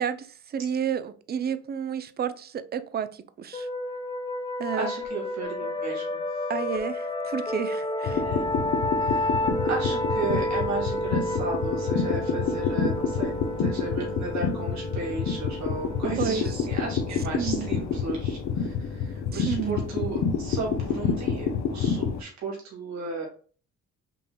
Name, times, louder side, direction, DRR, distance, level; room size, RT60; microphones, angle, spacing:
voice 1, 0.0-3.7 4.6-4.9 6.5-8.2 16.2-16.7 17.3-17.7 19.3-19.8, right 8 dB, 35° right, 0.4 m, -31 dB
sound 1, 3.5-18.9, left 1 dB, 15° left, 0.6 m, -31 dB
voice 2, 4.7-6.2 8.2-8.6 9.0-13.3 13.6-23.3, right 3 dB, 65° right, 2.0 m, -35 dB
sound 2, 8.0-22.2, left 6 dB, 65° left, 0.7 m, -28 dB
5.4 x 2.8 x 2.2 m
cardioid pair, 90°, 30 cm